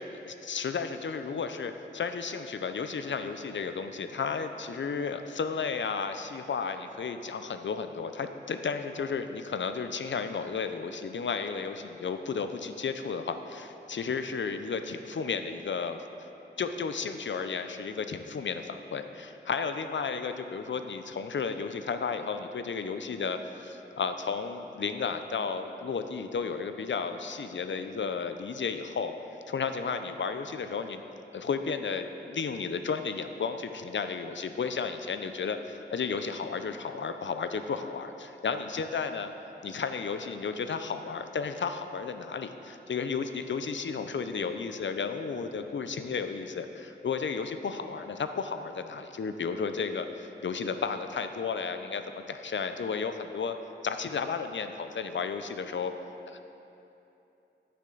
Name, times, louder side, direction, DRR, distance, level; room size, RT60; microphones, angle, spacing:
voice 1, 0.0-16.0 16.6-29.1 29.5-31.0 31.3-39.3 39.6-53.6 53.8-55.9 56.3-56.4, left 5 dB, 70° left, 8 dB, 0.6 m, -33 dB
10.5 x 9.2 x 3.9 m, 2.9 s
cardioid pair, 50°, 20 cm